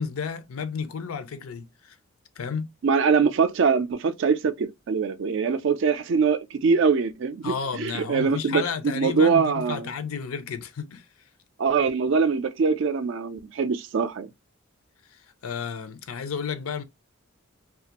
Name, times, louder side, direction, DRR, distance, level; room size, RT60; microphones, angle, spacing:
voice 1, 0.0-2.0 2.4-2.7 7.4-11.1 15.1-16.8, left 6 dB, 85° left, 0.5 m, -32 dB
voice 2, 2.8-9.9 11.6-14.3, right 5 dB, 60° right, 0.4 m, -23 dB
2.5 x 2.3 x 2.8 m
head